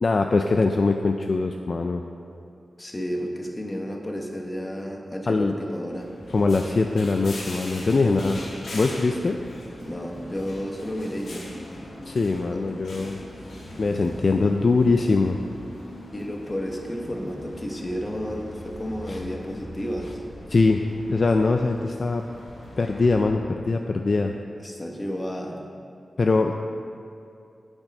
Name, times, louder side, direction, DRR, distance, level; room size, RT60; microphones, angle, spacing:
voice 1, 0.0-2.0 5.3-5.6 6.3-8.4 8.7-9.4 12.1-13.2 13.8-15.4 19.1-19.2 20.5-22.2 22.8-24.4 26.2-26.5, left 3 dB, 40° left, 4 dB, 0.4 m, -22 dB
voice 2, 2.8-6.1 8.0-8.5 9.8-11.5 12.5-12.6 16.1-20.2 24.6-25.6, equal, 20° left, 2 dB, 1.0 m, -32 dB
sound 1, 5.9-23.3, left 1 dB, 75° left, 2.3 m, -41 dB
9.1 x 8.8 x 5.3 m, 2.5 s
wide cardioid pair, 160°, 0 cm